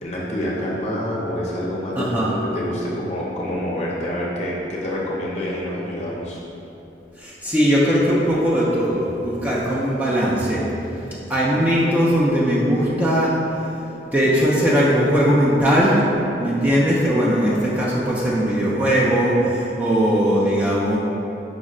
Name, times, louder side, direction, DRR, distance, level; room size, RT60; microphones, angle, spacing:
voice 1, 0.0-6.4, left 1 dB, 40° left, -5 dB, 0.6 m, -27 dB
voice 2, 2.0-2.3 7.2-10.6 11.3-13.3 14.1-16.0 16.4-21.0, equal, 10° right, -7 dB, 0.4 m, -19 dB
5.1 x 2.1 x 3.6 m, 2.9 s
head